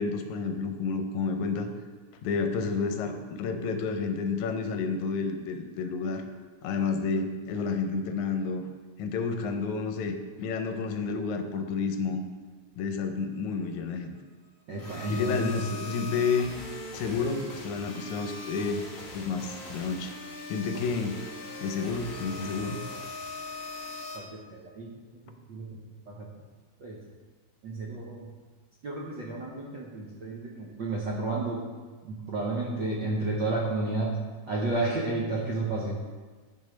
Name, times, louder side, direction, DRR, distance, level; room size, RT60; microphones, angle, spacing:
voice 1, 0.0-1.7 2.2-6.2 6.6-8.7 9.0-12.2 12.8-14.1 15.1-16.5 16.9-18.9 19.1-20.1 20.5-21.2 21.6-22.8, left 4 dB, 80° left, 6 dB, 2.1 m, -30 dB
voice 2, 14.7-15.5 24.1-24.9 25.5-25.8 26.1-26.3 26.8-26.9 27.6-28.3 28.8-31.6 32.0-34.2 34.5-36.0, right 2 dB, 70° right, -4 dB, 1.1 m, -31 dB
sound 1, 14.8-24.2, left 3 dB, 35° left, 1.4 m, -40 dB
9.8 x 4.9 x 5.2 m, 1.4 s
omnidirectional pair, 3.3 m